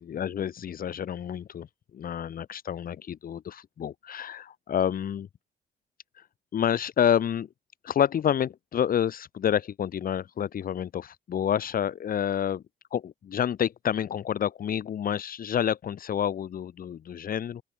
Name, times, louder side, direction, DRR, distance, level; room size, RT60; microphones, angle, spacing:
voice 1, 0.0-1.7 1.9-5.3 6.1-6.3 6.5-7.5 7.8-12.6 12.9-17.6, left 9 dB, 50° left, 2.0 m, -28 dB
open air
cardioid pair, 130°, 19 cm